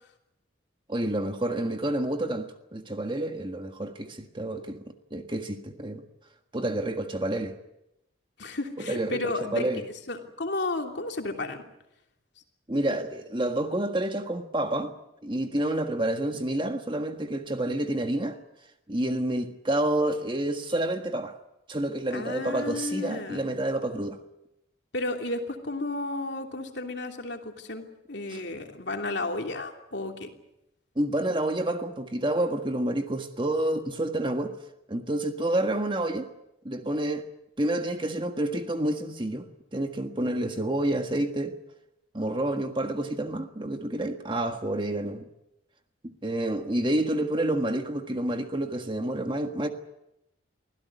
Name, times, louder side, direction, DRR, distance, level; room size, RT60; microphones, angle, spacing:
voice 1, 0.9-4.8 5.1-6.0 6.5-7.5 8.9-9.8 12.7-14.9 15.2-18.4 18.9-21.4 21.7-24.2 28.3-28.4 30.9-34.5 34.9-36.3 36.6-37.3 37.6-41.6 42.1-45.2 46.2-49.7, right 1 dB, 25° right, 1.6 m, -29 dB
voice 2, 8.4-9.6 10.1-11.6 22.1-23.4 24.9-30.3, left 2 dB, 60° left, 3.0 m, -33 dB
24.0 x 16.5 x 9.5 m
head